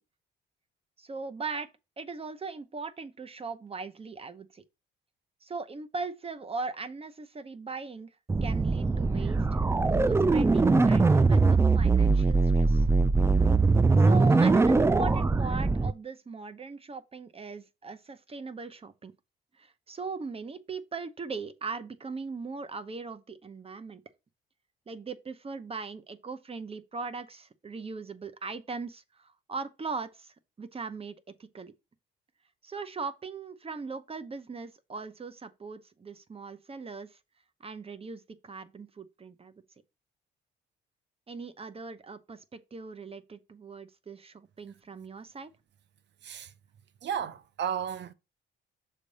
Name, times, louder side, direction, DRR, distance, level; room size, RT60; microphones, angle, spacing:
voice 1, 1.0-1.7 2.0-4.6 5.4-8.1 8.4-9.6 9.9-12.9 14.0-19.1 19.6-24.0 24.9-31.7 32.6-37.2 37.6-39.5 41.3-45.5, right 4 dB, 30° right, 0.8 m, -39 dB
sound 1, 8.3-15.9, right 3 dB, 15° right, 0.4 m, -22 dB
voice 2, 47.0-48.1, right 8 dB, 65° right, 0.8 m, -33 dB
6.6 x 3.4 x 5.3 m
cardioid pair, 90°, 20 cm